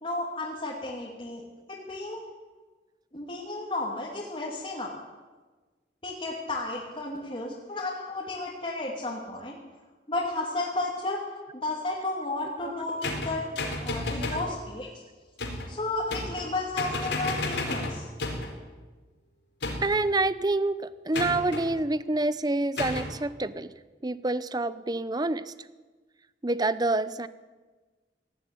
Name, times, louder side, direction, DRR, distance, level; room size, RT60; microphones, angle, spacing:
voice 1, 0.0-2.2 3.1-4.9 6.0-9.6 10.1-13.4 13.8-14.9 15.7-18.1, left 2 dB, 30° left, -4 dB, 2.7 m, -33 dB
sound 1, 13.0-14.5 15.4-15.7 16.1-16.5 16.8-18.6 19.6-20.1 21.1-21.7 22.8-23.1, left 2 dB, 80° left, 4.7 m, -32 dB
voice 2, 19.8-20.8 21.0-23.7 24.0-25.5 26.4-27.3, right 2 dB, 25° right, 15 dB, 0.7 m, -27 dB
18.5 x 15.0 x 10.0 m, 1.3 s
head